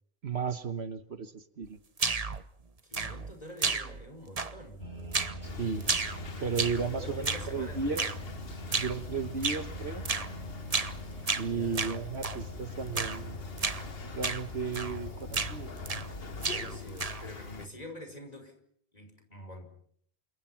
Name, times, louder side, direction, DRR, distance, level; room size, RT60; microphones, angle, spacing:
voice 1, 0.2-1.8 5.4-5.9 6.4-8.1 8.7-10.0 11.4-13.5 14.1-16.0, right 5 dB, 70° right, 10 dB, 1.5 m, -34 dB
sound 1, 2.0-2.4 2.9-3.3 3.6-4.1 4.4-4.7 5.1-5.4 5.8-6.9 7.2-7.5 8.0-8.2 8.7-9.0 9.4-9.7 10.0-10.3 10.7-11.0 11.3-12.4 12.9-13.2 13.6-13.8 14.2-14.4 14.7-15.0 15.3-16.1 16.4-17.3, right 4 dB, 35° right, 1.2 m, -32 dB
voice 2, 2.8-4.9 6.9-8.2 11.4-11.9 16.5-18.5 18.9-19.8, equal, 35° left, 5 dB, 5.7 m, -46 dB
sound 2, 4.8-16.8, equal, 90° left, 7.0 m, -43 dB
sound 3, 5.4-17.7, left 5 dB, 60° left, 1.6 m, -44 dB
29.0 x 26.0 x 5.9 m, 0.67 s
omnidirectional pair, 1.1 m